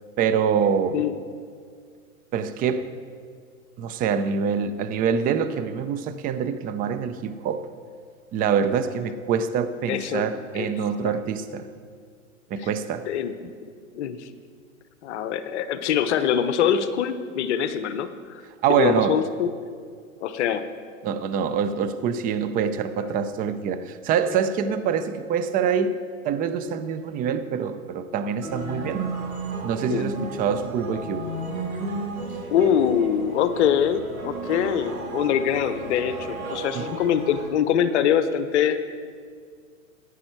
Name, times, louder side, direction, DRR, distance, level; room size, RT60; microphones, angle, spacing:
voice 1, 0.2-1.0 2.3-2.9 3.8-7.7 8.3-11.7 12.5-13.0 18.6-19.2 21.0-26.0 26.2-29.1 29.6-31.3 36.7-36.9, right 7 dB, 20° right, 11 dB, 0.6 m, -25 dB
voice 2, 9.9-10.3 10.5-10.7 11.0-11.2 12.6-12.7 13.1-14.3 15.0-18.4 18.7-19.5 20.2-20.7 23.0-23.1 29.9-30.1 32.5-38.8, left 8 dB, 55° left, 11 dB, 0.9 m, -24 dB
sound 1, 28.4-37.5, right 2 dB, 90° right, 2.9 m, -33 dB
14.5 x 10.0 x 4.6 m, 2.1 s
hypercardioid pair, 115°, 41 cm